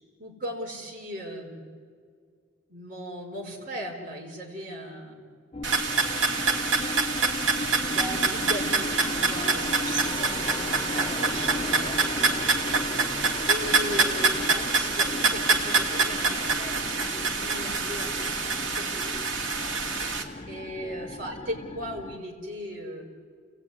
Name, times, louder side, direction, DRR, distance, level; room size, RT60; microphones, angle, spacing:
voice 1, 0.2-1.6 2.7-5.1 7.5-12.5 13.5-18.1 18.4-19.1 20.5-23.0, equal, 45° right, -1 dB, 4.9 m, -37 dB
sound 1, 5.5-22.2, left 2 dB, 25° left, 0.6 m, -36 dB
sound 2, 5.6-20.2, right 4 dB, 70° right, 2.6 m, -26 dB
29.5 x 18.5 x 9.7 m, 2.1 s
head